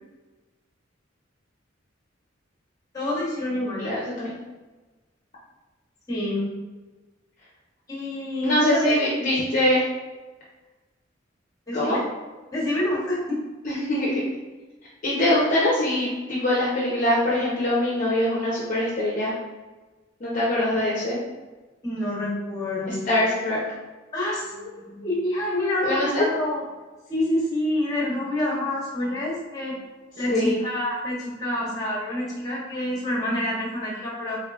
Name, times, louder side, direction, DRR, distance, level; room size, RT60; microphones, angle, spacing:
voice 1, 2.9-3.9 6.1-6.5 7.9-8.9 11.7-12.0 12.5-13.5 21.8-23.2 24.1-26.6 27.1-29.7 30.1-34.4, left 1 dB, 20° left, -5 dB, 1.0 m, -27 dB
voice 2, 3.8-4.3 8.4-9.8 11.7-12.0 13.6-14.2 15.0-19.3 20.2-21.2 22.9-23.6 25.8-26.2 30.3-30.6, left 1 dB, 40° left, -6 dB, 0.6 m, -23 dB
3.6 x 3.3 x 2.3 m, 1.2 s
head